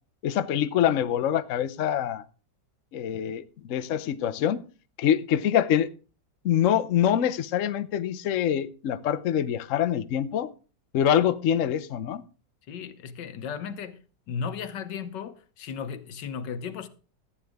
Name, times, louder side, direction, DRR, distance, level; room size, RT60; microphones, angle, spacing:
voice 1, 0.2-2.2 2.9-4.6 5.0-5.9 6.4-10.5 10.9-12.2, left 10 dB, 60° left, 0.9 m, -25 dB
voice 2, 12.7-14.0 14.3-16.9, left 6 dB, 80° left, 1.6 m, -35 dB
14.5 x 8.7 x 3.5 m
omnidirectional pair, 1.9 m